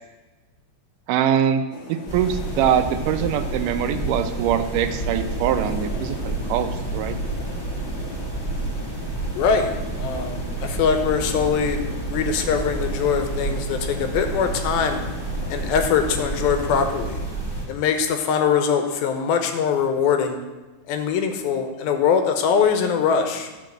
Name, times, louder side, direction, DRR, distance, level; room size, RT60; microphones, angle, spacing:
voice 1, 1.1-1.6 1.9-7.2, right 9 dB, 80° right, 8 dB, 1.9 m, -23 dB
sound 1, 1.7-16.9, left 3 dB, 50° left, 1.5 m, -38 dB
sound 2, 2.1-17.6, right 2 dB, 5° left, 2.3 m, -29 dB
voice 2, 9.3-9.7 10.0-11.8 12.1-15.0 15.5-17.3 17.7-20.4 20.9-23.5, left 6 dB, 85° left, 6 dB, 2.8 m, -22 dB
12.0 x 5.1 x 7.5 m, 1.2 s
omnidirectional pair, 4.3 m